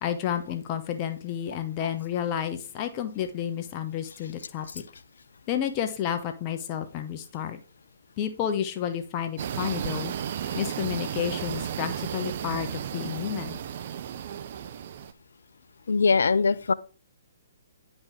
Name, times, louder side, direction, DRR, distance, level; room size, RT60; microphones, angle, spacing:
voice 1, 0.0-4.8 5.5-7.6 8.2-10.1 10.5-13.6, left 9 dB, 30° left, 1.0 m, -31 dB
sound 1, 9.4-15.1, right 9 dB, 50° right, 0.5 m, -34 dB
voice 2, 15.9-16.7, left 4 dB, 70° left, 0.4 m, -21 dB
9.8 x 5.3 x 3.7 m
figure-of-eight pair, 130°, 0 cm